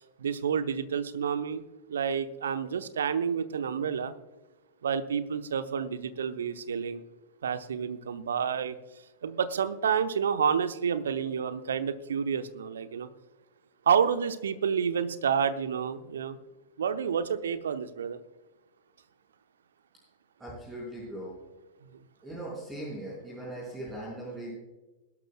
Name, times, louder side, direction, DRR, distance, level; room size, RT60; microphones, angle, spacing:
voice 1, 0.2-1.6 1.9-4.1 4.8-7.0 7.4-8.7 9.2-13.1 13.9-16.4 16.8-18.2, right 7 dB, 65° right, 11 dB, 0.8 m, -29 dB
voice 2, 20.4-21.4 22.2-24.5, right 1 dB, 15° right, -6 dB, 5.0 m, -39 dB
22.0 x 12.0 x 2.2 m, 1.2 s
figure-of-eight pair, 90°, 0 cm